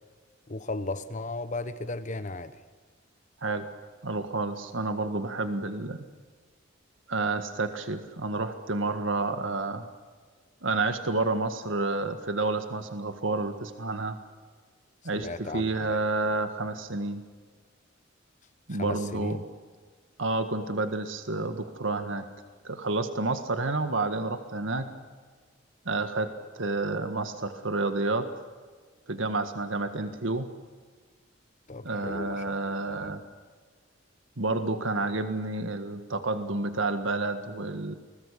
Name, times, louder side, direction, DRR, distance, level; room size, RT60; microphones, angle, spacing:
voice 1, 0.5-2.6 15.1-16.0 18.7-19.4 31.7-33.2, left 2 dB, 40° left, 11 dB, 1.1 m, -36 dB
voice 2, 4.0-6.0 7.1-9.8 10.6-14.2 15.0-17.2 18.7-19.4 20.2-22.2 22.6-24.9 25.8-28.3 29.1-30.5 31.8-33.2 34.4-38.0, right 3 dB, 80° right, 8 dB, 1.7 m, -30 dB
29.5 x 20.5 x 8.5 m, 1.5 s
head